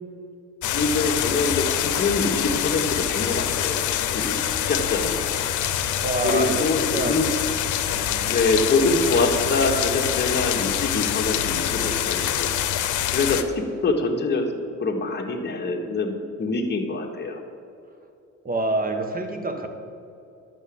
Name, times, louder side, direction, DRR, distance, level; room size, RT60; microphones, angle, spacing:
sound 1, 0.6-13.4, left 10 dB, 75° left, 0.8 m, -25 dB
voice 1, 0.7-3.9 4.1-4.4 4.7-5.2 6.2-7.3 8.3-12.5 13.1-14.5 14.8-17.4, left 3 dB, 35° left, 1 dB, 1.6 m, -24 dB
voice 2, 6.0-7.2 8.0-8.4 18.4-19.7, right 2 dB, 30° right, 6 dB, 1.5 m, -27 dB
11.0 x 6.1 x 8.7 m, 2.7 s
cardioid pair, 90°, 30 cm